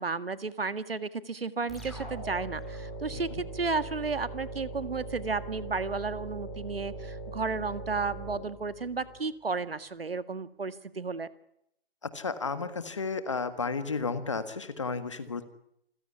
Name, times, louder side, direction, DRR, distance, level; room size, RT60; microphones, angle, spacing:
voice 1, 0.0-11.3, right 4 dB, 70° right, 13 dB, 1.9 m, -33 dB
sound 1, 1.7-9.2, right 2 dB, ahead, 2.1 m, -40 dB
voice 2, 12.1-15.5, left 4 dB, 30° left, 11 dB, 1.7 m, -33 dB
27.5 x 16.0 x 9.7 m, 0.75 s
hypercardioid pair, 175°, 30 cm